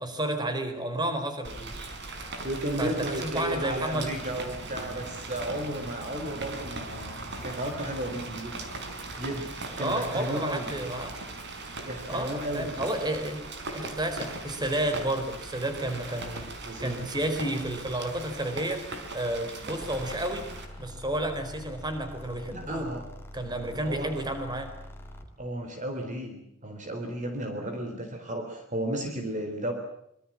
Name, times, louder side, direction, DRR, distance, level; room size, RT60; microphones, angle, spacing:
voice 1, 0.0-1.7 2.8-4.1 9.8-11.2 12.1-13.4 13.7-16.5 16.8-18.8 19.1-20.4 20.8-22.9 23.3-24.7, right 1 dB, 20° right, 7 dB, 4.5 m, -31 dB
Rain, 1.4-20.6, right 2 dB, 55° right, 4.7 m, -39 dB
voice 2, 2.4-7.2 7.4-8.6 9.2-9.5 9.8-10.7 11.7-12.7 16.7-17.0 22.5-23.0 23.7-24.3 25.4-29.7, right 1 dB, 35° right, 5 dB, 3.8 m, -34 dB
sound 1, 19.8-25.4, left 1 dB, 10° left, 3.7 m, -45 dB
25.5 x 23.5 x 7.5 m, 0.76 s
head